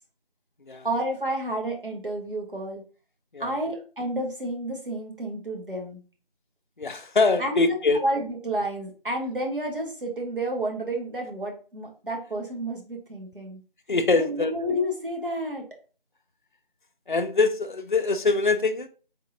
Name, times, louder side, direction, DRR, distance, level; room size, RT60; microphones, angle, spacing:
voice 1, 0.8-2.8 3.4-6.0 7.4-7.8 8.0-13.6 14.1-15.6, right 1 dB, 65° right, 1.4 m, -30 dB
voice 2, 6.8-8.0 13.9-14.5 17.1-18.9, left 3 dB, 55° left, 0.5 m, -23 dB
3.7 x 3.7 x 2.8 m
figure-of-eight pair, 180°, 29 cm